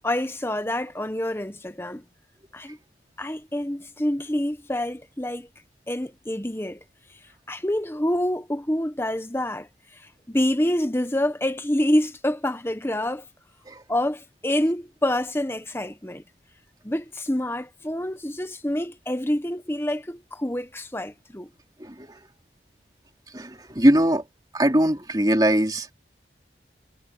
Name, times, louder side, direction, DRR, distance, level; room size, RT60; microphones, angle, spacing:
voice 1, 0.0-2.0 2.5-2.8 3.2-5.5 5.9-6.8 7.5-9.7 10.0-13.2 13.9-16.2 16.8-21.5, left 1 dB, 15° left, 1.2 m, -27 dB
voice 2, 23.3-24.2 24.5-25.9, right 1 dB, 20° right, 2.9 m, -21 dB
head